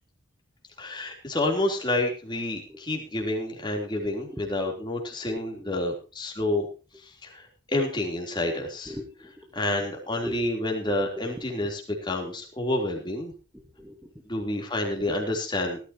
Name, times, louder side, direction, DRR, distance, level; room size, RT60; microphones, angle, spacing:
voice 1, 0.8-6.7 7.0-8.9 9.6-13.3 14.3-15.8, left 1 dB, 20° left, 1 dB, 3.7 m, -29 dB
voice 2, 5.3-5.8 8.9-9.8 10.2-10.5 11.0-11.1 11.4-11.7 13.5-14.1 15.0-15.1, left 1 dB, 5° right, 3 dB, 1.5 m, -41 dB
18.5 x 13.0 x 3.0 m, 0.35 s
head